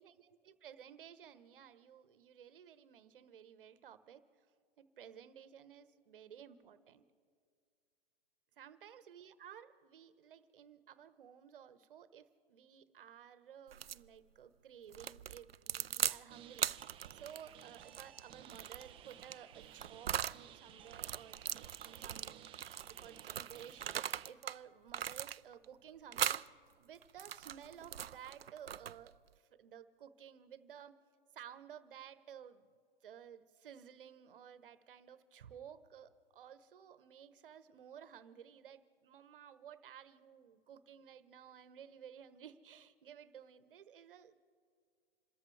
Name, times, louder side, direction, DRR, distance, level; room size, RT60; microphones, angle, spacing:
voice 1, 0.5-4.2 4.8-7.0 8.6-26.4 26.8-31.0 31.3-44.4, right 9 dB, 65° right, 13 dB, 1.2 m, -55 dB
sound 1, 13.7-14.1 14.9-16.2 16.6-20.4 20.9-24.6 24.9-25.7 26.1-26.5 27.0-29.1, right 9 dB, 85° right, 0.5 m, -40 dB
sound 2, 16.3-24.3, right 10 dB, 20° right, 0.7 m, -57 dB
28.0 x 13.5 x 3.4 m, 2.1 s
hypercardioid pair, 120°, 29 cm